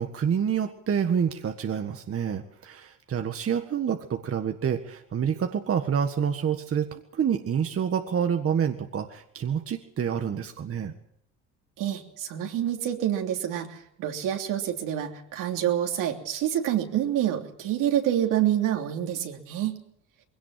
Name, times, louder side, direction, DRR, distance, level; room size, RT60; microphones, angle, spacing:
voice 1, 0.0-10.9, right 7 dB, 45° right, 6 dB, 1.7 m, -28 dB
voice 2, 11.8-19.8, right 11 dB, 75° right, 3 dB, 3.2 m, -27 dB
21.0 x 17.5 x 7.6 m, 0.76 s
supercardioid pair, 80°, 32 cm